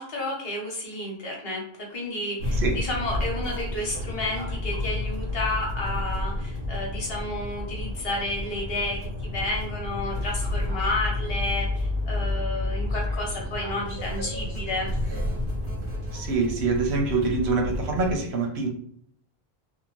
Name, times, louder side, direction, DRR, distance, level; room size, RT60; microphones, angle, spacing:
voice 1, 0.0-1.6 1.9-14.9, left 2 dB, 70° left, -1 dB, 1.2 m, -31 dB
sound 1, 2.4-18.2, left 2 dB, 60° right, 1.3 m, -30 dB
voice 2, 16.1-18.7, right 4 dB, 85° right, 2 dB, 1.0 m, -25 dB
2.7 x 2.2 x 3.0 m, 0.66 s
omnidirectional pair, 1.0 m